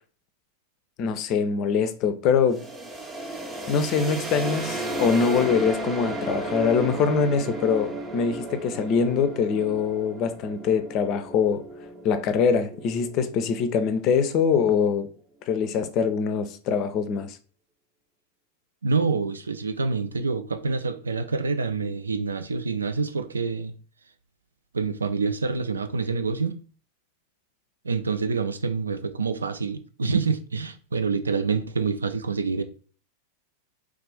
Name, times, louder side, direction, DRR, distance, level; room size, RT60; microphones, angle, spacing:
voice 1, 1.0-2.6 3.7-11.6 12.0-15.1 15.5-17.4, left 6 dB, 40° left, 0.4 m, -23 dB
sound 1, 2.5-14.2, right 1 dB, 15° right, 0.6 m, -34 dB
voice 2, 18.8-23.7 24.7-26.6 27.8-32.6, right 4 dB, 75° right, 0.3 m, -27 dB
3.2 x 2.5 x 3.4 m
figure-of-eight pair, 90°, 0 cm